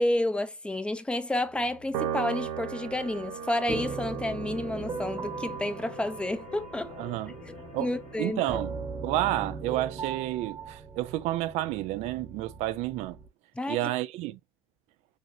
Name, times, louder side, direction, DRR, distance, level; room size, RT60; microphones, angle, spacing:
voice 1, 0.0-6.9 7.5-7.6 7.8-8.6 13.6-13.9, left 1 dB, 10° left, 0.6 m, -30 dB
sound 1, 1.3-8.3, left 6 dB, 55° left, 1.6 m, -48 dB
Piano, 1.9-8.5, right 9 dB, 85° right, 0.8 m, -38 dB
sound 2, 3.7-13.3, right 5 dB, 25° right, 1.0 m, -39 dB
voice 2, 7.0-7.3 7.7-7.9 8.2-8.8 9.0-13.2 13.7-14.4, right 15 dB, 60° right, 0.4 m, -30 dB
6.4 x 2.9 x 2.7 m
supercardioid pair, 110°, 13 cm